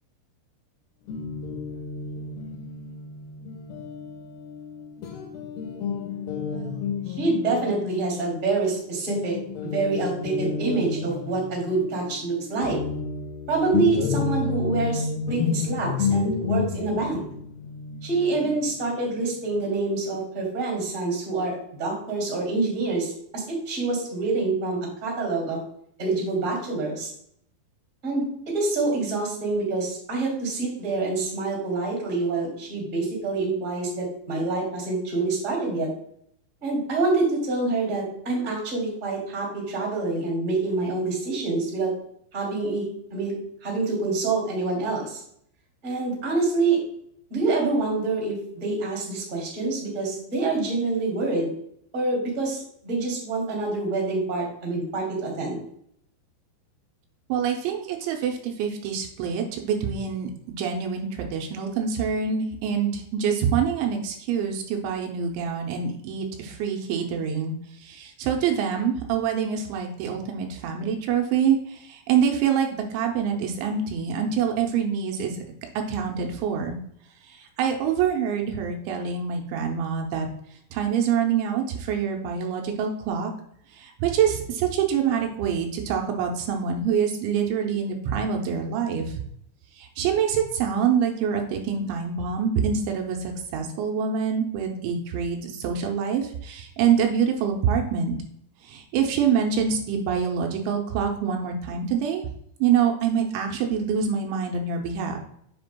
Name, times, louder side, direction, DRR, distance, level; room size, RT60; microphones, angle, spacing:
Guitar, 1.1-8.8 9.1-19.5, left 5 dB, 80° left, 2.4 m, -31 dB
voice 1, 6.4-6.8 7.1-9.3 9.6-12.8 13.5-17.2 18.0-25.6 26.0-27.1 28.0-28.2 28.5-35.9 36.6-41.9 42.3-42.8 43.1-43.3 43.6-45.2 45.8-46.8 47.3-51.5 51.9-55.6, right 3 dB, 20° right, -1 dB, 2.3 m, -26 dB
voice 2, 57.3-60.3 60.6-67.5 67.8-75.4 75.9-76.8 77.2-80.3 80.7-83.3 83.7-89.2 89.8-98.2 98.6-102.3 102.6-105.2, right 7 dB, 80° right, 2 dB, 3.1 m, -25 dB
7.6 x 7.4 x 2.3 m, 0.68 s
omnidirectional pair, 5.3 m